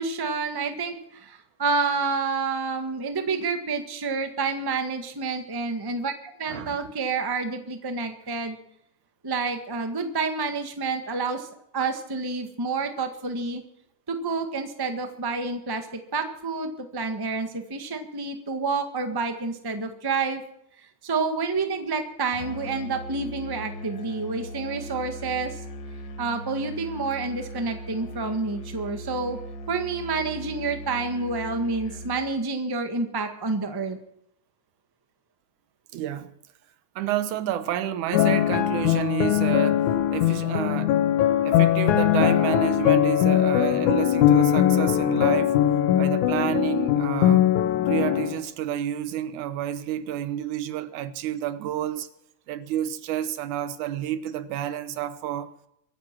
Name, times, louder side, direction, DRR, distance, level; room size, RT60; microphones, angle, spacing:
voice 1, 0.0-8.6 9.2-11.5 11.7-13.6 14.1-20.4 20.8-25.6 26.2-29.4 29.7-34.0, right 4 dB, 15° right, 0.7 m, -29 dB
Musical instrument, 22.3-32.3, equal, 55° left, 1.5 m, -39 dB
voice 2, 35.9-36.3 37.0-39.8 40.1-40.9 41.4-45.6 46.0-47.4 47.9-52.1 52.5-55.5, right 11 dB, 90° right, 2.5 m, -29 dB
sound 1, 38.1-48.4, left 11 dB, 80° left, 2.3 m, -21 dB
23.5 x 9.3 x 6.0 m
omnidirectional pair, 3.4 m